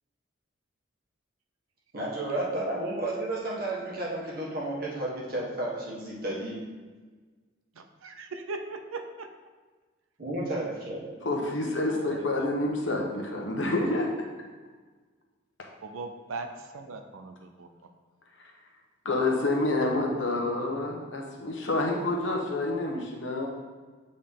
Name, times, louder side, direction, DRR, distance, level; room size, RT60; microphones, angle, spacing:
voice 1, 1.9-6.6 10.2-11.0, right 1 dB, 45° right, -4 dB, 1.5 m, -32 dB
voice 2, 7.8-9.3 11.9-12.5 13.4-13.6 15.8-17.7, right 3 dB, 90° right, 7 dB, 0.6 m, -40 dB
voice 3, 11.2-14.1 19.0-23.5, left 2 dB, 65° left, 0 dB, 1.1 m, -28 dB
8.6 x 3.9 x 3.7 m, 1.4 s
head